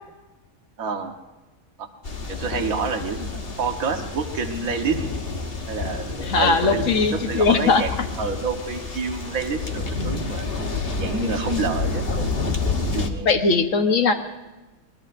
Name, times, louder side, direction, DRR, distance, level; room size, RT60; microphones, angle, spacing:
voice 1, 0.8-1.1 1.8-1.9 2.3-5.0 5.7-10.5 11.0-12.0 12.7-13.4, right 4 dB, 70° right, 3 dB, 1.7 m, -28 dB
sound 1, 2.0-13.1, left 3 dB, 45° left, 1.4 m, -29 dB
voice 2, 6.3-7.8 13.2-14.1, left 4 dB, 65° left, 7 dB, 1.4 m, -19 dB
25.0 x 20.5 x 2.6 m, 1.2 s
omnidirectional pair, 1.5 m